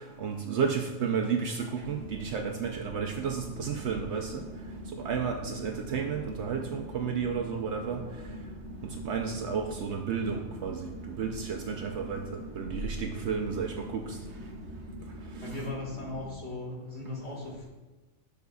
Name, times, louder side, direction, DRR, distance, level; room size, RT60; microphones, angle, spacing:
voice 1, 0.2-4.4 5.0-8.0 9.0-12.2 12.6-14.2 15.4-15.6, right 6 dB, 65° right, 3 dB, 0.8 m, -32 dB
sound 1, 1.8-16.3, equal, 85° right, 1.2 m, -43 dB
voice 2, 15.4-17.7, left 2 dB, 55° left, -3 dB, 1.9 m, -38 dB
12.0 x 6.4 x 2.3 m, 1.2 s
omnidirectional pair, 1.3 m